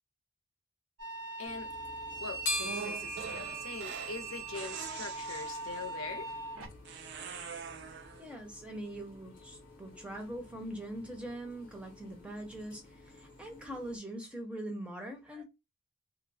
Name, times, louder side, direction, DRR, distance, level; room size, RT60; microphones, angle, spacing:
sound 1, 1.0-6.7, right 4 dB, 75° right, 0.8 m, -42 dB
voice 1, 1.4-1.7 2.2-6.3, left 4 dB, 80° left, 0.6 m, -43 dB
sound 2, 1.5-14.0, left 1 dB, 40° left, 0.7 m, -45 dB
sound 3, 2.6-4.2 4.5-6.0 6.8-8.3, right 6 dB, 50° right, 0.4 m, -43 dB
voice 2, 8.2-15.4, right 1 dB, 5° right, 0.6 m, -42 dB
2.9 x 2.0 x 2.6 m
head